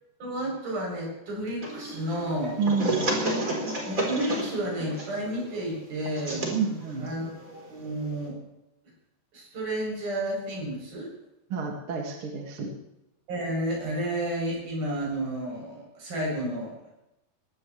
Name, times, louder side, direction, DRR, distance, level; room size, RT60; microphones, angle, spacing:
voice 1, 0.2-2.6 3.9-6.5 7.0-8.4 9.3-11.1 13.3-16.9, right 1 dB, 60° right, -2 dB, 9.9 m, -31 dB
sound 1, 1.6-8.3, right 1 dB, 20° right, 4.0 m, -32 dB
voice 2, 2.6-3.1 6.5-7.1 11.5-12.7, right 5 dB, 40° right, 1 dB, 2.3 m, -29 dB
21.0 x 17.5 x 3.3 m, 0.89 s
omnidirectional pair, 4.7 m